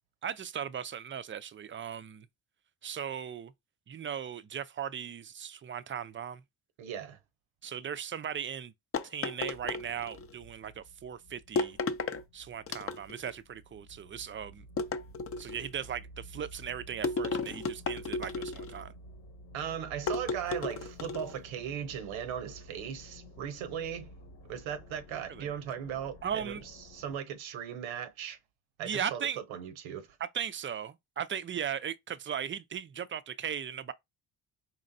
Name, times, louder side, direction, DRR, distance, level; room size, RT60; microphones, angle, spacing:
voice 1, 0.2-2.3 2.8-3.5 3.9-6.4 7.6-8.7 9.0-11.8 12.3-14.7 15.4-18.9 25.3-25.5 26.2-26.6 28.8-29.4 30.3-33.9, right 8 dB, 30° right, 0.4 m, -37 dB
voice 2, 6.8-7.2 19.5-24.1 24.5-28.4 28.8-30.2, right 9 dB, 90° right, 0.8 m, -38 dB
sound 1, 8.9-10.3 11.6-12.2 12.7-13.3 14.8-15.7 17.0-18.8 20.1-21.3, left 4 dB, 30° left, 0.5 m, -33 dB
sound 2, 9.4-27.2, equal, 60° left, 1.0 m, -52 dB
4.1 x 3.0 x 2.6 m
supercardioid pair, 75°, 46 cm